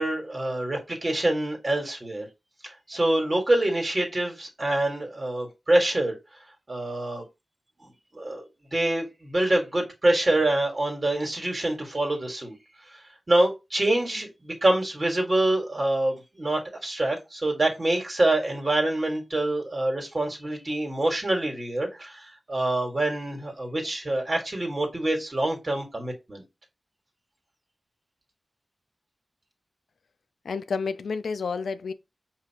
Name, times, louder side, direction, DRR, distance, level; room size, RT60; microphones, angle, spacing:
voice 1, 0.0-2.3 2.9-6.1 6.7-7.2 7.8-8.4 8.7-12.6 13.3-26.4, right 1 dB, 45° right, 1.7 m, -26 dB
voice 2, 30.4-31.9, left 5 dB, 90° left, 0.4 m, -30 dB
5.1 x 2.8 x 2.9 m
cardioid pair, 50°, 0 cm